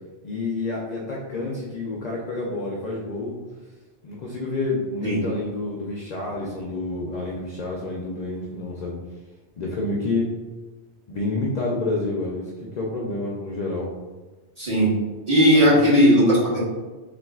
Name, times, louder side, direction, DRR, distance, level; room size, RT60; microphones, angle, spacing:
voice 1, 0.2-3.4 4.0-9.0 9.6-10.3 11.1-13.9 15.5-15.8, left 2 dB, 55° left, -3 dB, 0.5 m, -28 dB
voice 2, 14.6-14.9 15.3-16.6, equal, 35° right, -8 dB, 1.1 m, -17 dB
4.0 x 2.5 x 2.3 m, 1.3 s
omnidirectional pair, 1.2 m